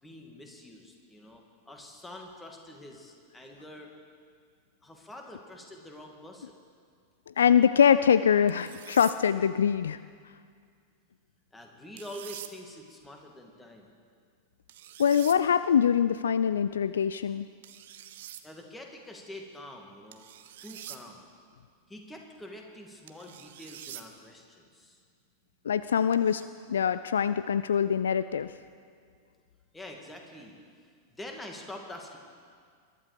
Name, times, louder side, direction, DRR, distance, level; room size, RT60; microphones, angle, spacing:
voice 1, 0.0-3.9 4.8-6.6 11.5-13.9 18.4-20.2 20.6-21.2 21.9-25.0 29.7-30.6 31.1-32.2, left 1 dB, 10° left, 2 dB, 2.4 m, -46 dB
voice 2, 7.4-10.0 15.0-17.5 25.7-26.4 26.7-28.5, left 8 dB, 65° left, 14 dB, 0.3 m, -23 dB
sound 1, 8.5-9.2 12.0-12.5 14.7-15.4 17.6-18.4 20.1-21.0 23.1-24.1 26.1-26.5, right 12 dB, 55° right, 0.8 m, -45 dB
22.0 x 12.0 x 5.1 m, 2.1 s
figure-of-eight pair, 90°, 0 cm